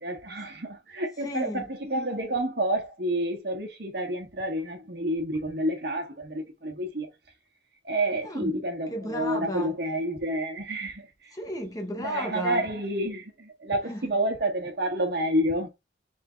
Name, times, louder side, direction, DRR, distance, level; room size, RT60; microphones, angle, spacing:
voice 1, 0.0-7.1 7.8-11.1 12.0-15.7, right 1 dB, 60° right, 1.4 m, -29 dB
voice 2, 1.2-1.7 8.2-8.5 8.9-9.7 11.3-12.6 13.9-14.1, equal, 20° left, 0.7 m, -33 dB
3.7 x 3.4 x 3.9 m
head